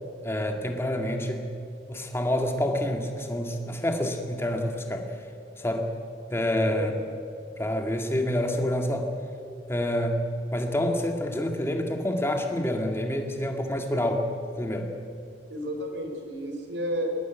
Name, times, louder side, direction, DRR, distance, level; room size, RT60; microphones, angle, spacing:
voice 1, 0.2-1.5 1.9-5.2 5.6-5.9 6.3-6.9 7.6-9.1 9.7-10.3 10.5-14.3 14.6-14.9, left 1 dB, 15° left, 4 dB, 2.0 m, -27 dB
voice 2, 6.7-7.1 15.5-17.1, equal, 80° right, 4 dB, 4.0 m, -32 dB
20.0 x 20.0 x 8.2 m, 2.5 s
head